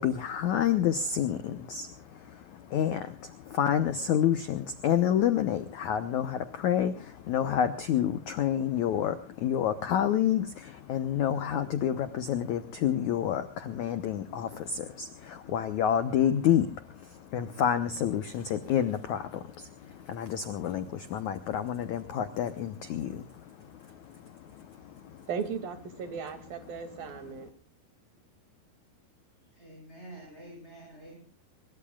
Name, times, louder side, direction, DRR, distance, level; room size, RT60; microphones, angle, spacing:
voice 1, 0.0-25.3, left 9 dB, 75° left, 10 dB, 1.7 m, -29 dB
voice 2, 25.3-27.5, right 6 dB, 60° right, 8 dB, 4.0 m, -36 dB
voice 3, 29.5-31.2, right 1 dB, 15° right, -1 dB, 6.8 m, -48 dB
24.5 x 22.0 x 2.4 m, 0.34 s
omnidirectional pair, 4.9 m